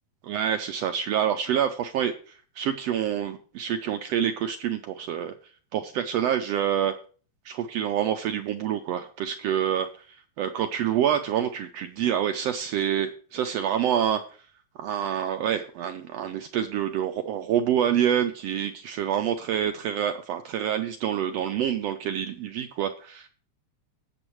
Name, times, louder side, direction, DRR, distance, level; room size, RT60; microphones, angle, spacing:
voice 1, 0.2-5.3 5.7-7.0 7.4-14.2 14.8-23.3, right 9 dB, 75° right, 7 dB, 1.5 m, -27 dB
17.5 x 7.1 x 3.1 m, 0.42 s
omnidirectional pair, 3.4 m